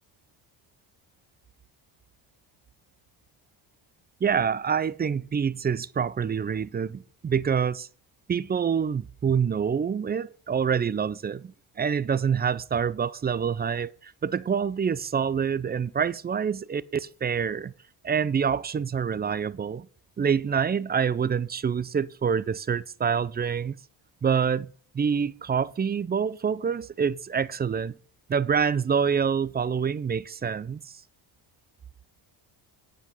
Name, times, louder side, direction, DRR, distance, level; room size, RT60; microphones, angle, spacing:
voice 1, 4.2-7.9 8.3-17.7 18.0-19.9 20.2-23.8 24.2-27.9 28.3-30.9, right 7 dB, 20° right, 0.4 m, -26 dB
9.9 x 5.6 x 6.3 m
cardioid pair, 110°, 48 cm